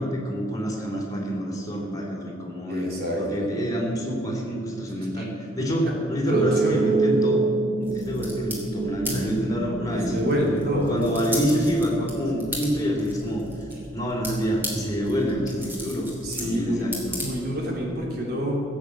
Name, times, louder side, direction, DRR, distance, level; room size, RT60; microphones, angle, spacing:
voice 1, 0.0-2.9 3.2-7.5 7.8-10.1 10.9-13.4 13.9-16.1 16.4-17.2, equal, 20° left, -2 dB, 3.0 m, -27 dB
voice 2, 2.7-3.5 5.2-5.3 5.6-5.9 6.3-6.8 9.9-10.9 16.2-16.9 17.2-18.6, equal, 55° right, -2 dB, 3.2 m, -27 dB
sound 1, 6.3-13.2, right 3 dB, 30° right, 0.7 m, -28 dB
sound 2, 7.8-17.8, equal, 10° right, 3.0 m, -37 dB
16.5 x 8.0 x 8.3 m, 2.4 s
head